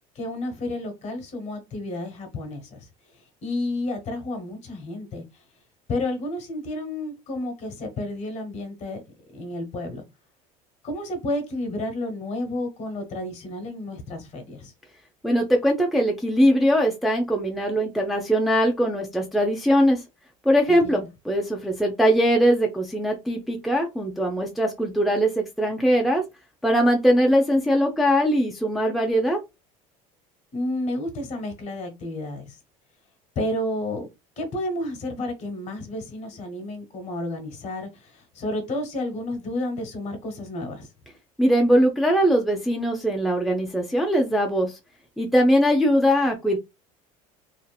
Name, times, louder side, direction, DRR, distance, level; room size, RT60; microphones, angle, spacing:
voice 1, 0.1-2.9 3.4-5.2 5.9-9.0 9.3-10.0 10.8-14.7 20.7-21.0 30.5-32.6 33.3-34.1 34.4-40.9, left 1 dB, 45° left, 1.1 m, -31 dB
voice 2, 15.2-20.0 20.4-26.2 26.6-29.4 41.4-44.8 45.2-46.6, equal, ahead, 0.5 m, -21 dB
2.7 x 2.5 x 2.3 m
supercardioid pair, 115°, 17 cm